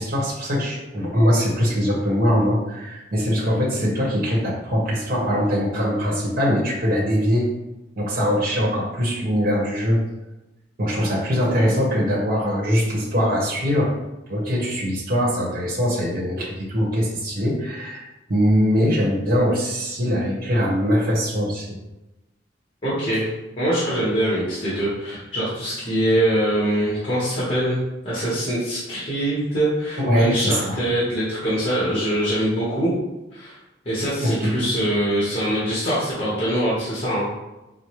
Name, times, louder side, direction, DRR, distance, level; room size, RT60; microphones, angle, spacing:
voice 1, 0.0-7.5 8.0-10.0 10.8-13.9 14.3-18.0 18.3-21.7 30.0-30.8 34.2-34.6, equal, 50° right, -4 dB, 0.9 m, -22 dB
voice 2, 22.8-27.8 28.0-32.9 33.3-33.6 33.8-37.3, right 1 dB, 30° left, -8 dB, 1.0 m, -23 dB
4.8 x 2.0 x 2.9 m, 0.99 s
head